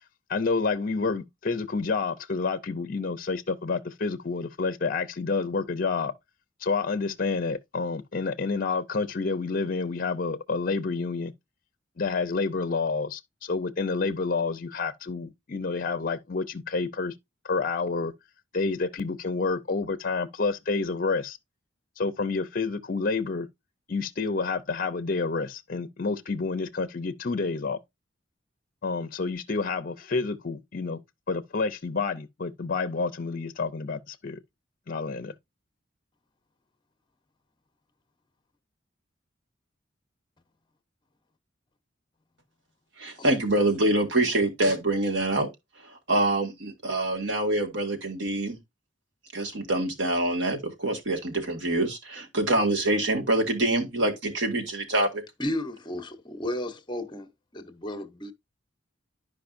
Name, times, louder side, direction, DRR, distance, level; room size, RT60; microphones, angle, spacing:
voice 1, 0.3-6.1 6.6-11.3 12.0-17.1 17.4-18.1 18.5-21.4 22.0-23.5 23.9-27.8 28.8-31.0 31.3-34.4 34.9-35.3, left 4 dB, 45° left, 0.6 m, -29 dB
voice 2, 43.0-45.5 46.1-48.6 49.3-55.2, right 1 dB, 70° right, 2.0 m, -25 dB
voice 3, 55.4-58.3, left 1 dB, 25° left, 0.9 m, -34 dB
11.5 x 5.0 x 2.5 m
head